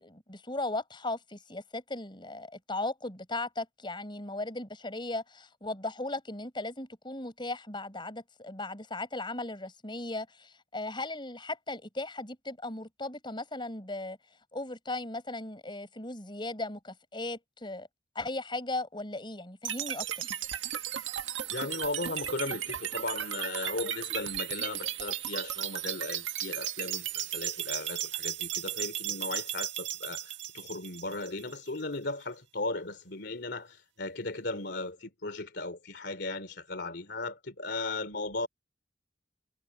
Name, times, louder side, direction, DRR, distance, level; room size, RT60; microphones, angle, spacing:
voice 1, 0.0-14.2 14.5-17.9 18.1-20.2, left 2 dB, 25° left, 6.0 m, -37 dB
sound 1, 19.6-31.7, right 10 dB, 80° right, 1.7 m, -35 dB
voice 2, 21.5-38.5, left 2 dB, 60° left, 3.0 m, -36 dB
head